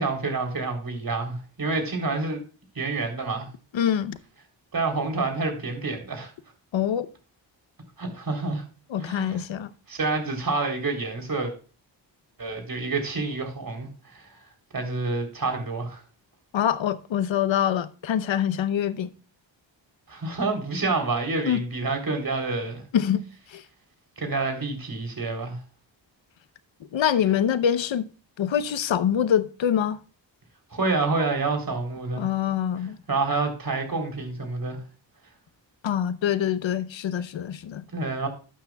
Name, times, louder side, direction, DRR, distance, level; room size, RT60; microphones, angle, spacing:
voice 1, 0.0-2.4 2.8-3.5 4.7-6.3 8.0-8.6 9.0-9.4 9.9-11.5 12.4-14.4 14.7-16.0 20.1-22.8 24.2-25.6 30.7-32.3 33.1-34.8 37.9-38.3, right 3 dB, 50° right, 3.5 m, -28 dB
voice 2, 3.7-4.2 6.7-7.1 8.9-9.7 16.5-19.1 21.5-21.6 22.9-23.6 26.9-28.1 28.4-30.0 32.2-33.0 35.8-37.8, left 9 dB, 75° left, 0.9 m, -25 dB
12.0 x 8.8 x 2.3 m
cardioid pair, 75°, 46 cm